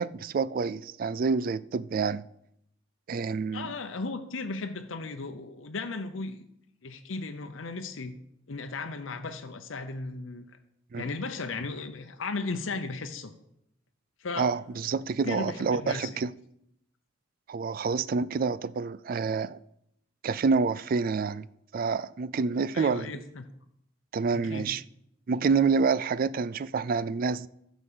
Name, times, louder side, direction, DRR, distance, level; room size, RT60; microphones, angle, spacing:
voice 1, 0.0-2.2 3.1-3.7 10.9-11.1 14.4-16.3 17.5-19.6 20.2-21.5 21.7-23.2 24.1-24.8 25.3-27.5, right 5 dB, 45° right, 0.3 m, -28 dB
voice 2, 3.5-6.5 6.8-8.2 8.5-10.5 11.0-13.3 14.2-14.5 15.2-16.1 22.7-23.5 24.3-24.7, left 3 dB, 85° left, 0.7 m, -36 dB
11.0 x 6.1 x 6.8 m
head